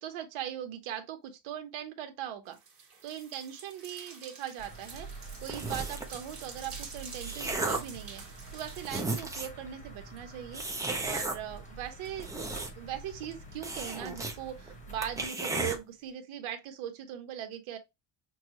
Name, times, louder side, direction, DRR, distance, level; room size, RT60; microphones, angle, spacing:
voice 1, 0.0-2.6 3.0-5.1 5.4-8.2 8.5-10.6 11.0-12.3 12.7-17.8, right 10 dB, 85° right, 1.3 m, -40 dB
sound 1, 2.5-9.2, right 4 dB, 30° right, 1.4 m, -48 dB
sound 2, 4.6-15.3, right 3 dB, 15° left, 0.9 m, -47 dB
sound 3, 5.5-6.2 6.8-8.0 8.5-8.6 8.8-9.6 10.5-11.4 12.0-12.9 13.2-13.3 13.6-14.4 14.7-14.8 15.0-15.8, right 2 dB, 10° right, 0.4 m, -34 dB
5.9 x 2.4 x 2.9 m
cardioid pair, 175°, 48 cm